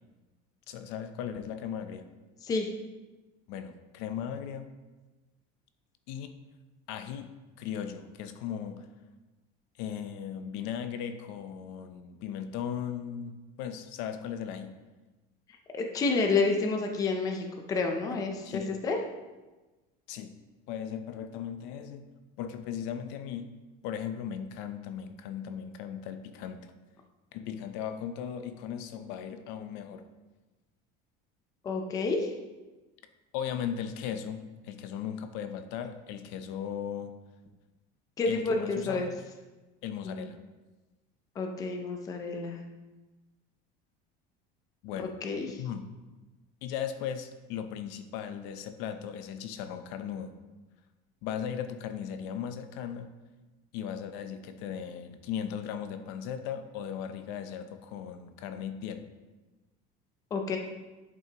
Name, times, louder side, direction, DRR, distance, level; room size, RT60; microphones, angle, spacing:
voice 1, 0.7-2.1 3.5-4.7 6.1-6.3 6.9-7.3 7.6-8.9 9.8-14.7 18.0-18.8 20.1-20.3 20.7-22.1 22.4-23.5 23.8-26.7 27.3-30.0 33.3-37.1 38.3-39.2 39.8-40.4 44.8-45.1 45.6-45.9 46.6-50.3 51.2-53.1 53.7-59.0, left 8 dB, 60° left, 9 dB, 0.6 m, -37 dB
voice 2, 15.7-19.0 31.6-32.3 38.2-39.1 40.0-40.3 41.4-42.6 45.0-45.5 60.3-60.6, left 3 dB, 15° left, 3 dB, 0.5 m, -29 dB
11.0 x 5.7 x 2.9 m, 1.2 s
cardioid pair, 180°, 20 cm